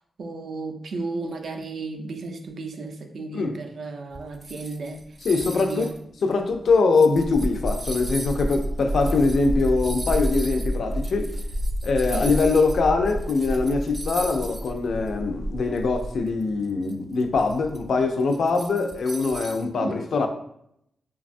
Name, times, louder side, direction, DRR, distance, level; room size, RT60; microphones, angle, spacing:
voice 1, 0.0-5.2 5.4-5.9 12.1-12.4 19.7-20.1, right 3 dB, 70° right, 0.4 m, -34 dB
sound 1, 4.1-12.8 13.1-14.8 15.1-15.2 15.8-19.7, equal, 5° right, 0.4 m, -40 dB
voice 2, 5.3-5.9 6.2-11.3 11.8-20.3, left 3 dB, 75° left, 0.4 m, -23 dB
sound 2, 7.2-16.2, equal, 40° right, 0.8 m, -30 dB
3.2 x 2.3 x 2.5 m
cardioid pair, 90°, 0 cm